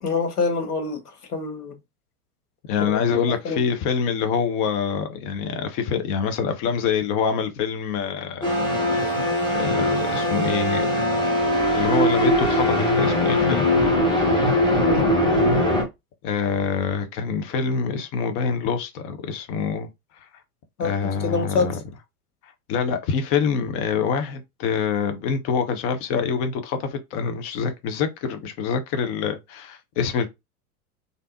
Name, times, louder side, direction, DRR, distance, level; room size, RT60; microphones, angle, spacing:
voice 1, 0.0-1.0 1.3-1.7 2.8-3.0 3.4-3.6 14.8-15.1 20.8-21.8, left 4 dB, 80° left, 1.0 m, -25 dB
voice 2, 2.7-8.5 9.5-11.0 11.7-13.7 16.2-19.9 20.8-21.8 22.7-30.3, left 6 dB, 30° left, 0.6 m, -25 dB
sound 1, 8.4-15.8, left 1 dB, 10° left, 1.4 m, -21 dB
3.3 x 2.6 x 2.5 m
figure-of-eight pair, 90°, 45 cm